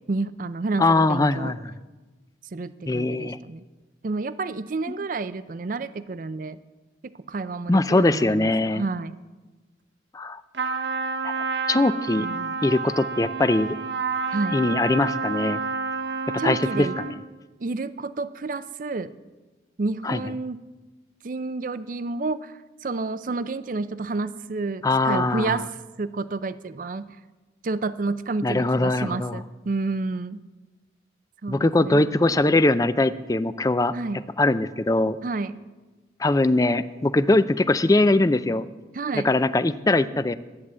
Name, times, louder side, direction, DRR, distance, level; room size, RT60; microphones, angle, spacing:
voice 1, 0.1-1.5 2.5-3.6 4.0-6.6 7.0-9.2 12.2-12.6 14.3-14.6 16.4-17.0 17.6-19.1 19.8-20.6 21.2-25.7 26.0-27.2 27.6-30.4 31.4-32.4 33.9-34.2 35.2-35.6 38.9-39.3, right 3 dB, 45° right, 14 dB, 0.5 m, -30 dB
voice 2, 0.8-1.7 2.9-3.4 7.7-8.8 10.1-10.4 11.2-11.3 11.7-12.3 12.6-13.8 14.5-15.6 16.4-17.2 20.0-20.2 24.8-25.6 28.4-29.4 31.5-33.9 34.4-35.2 36.2-38.7 39.1-40.4, left 2 dB, 20° left, 13 dB, 0.4 m, -21 dB
Trumpet, 10.5-17.2, right 4 dB, 75° right, 1.0 m, -29 dB
13.0 x 9.7 x 7.4 m, 1.2 s
head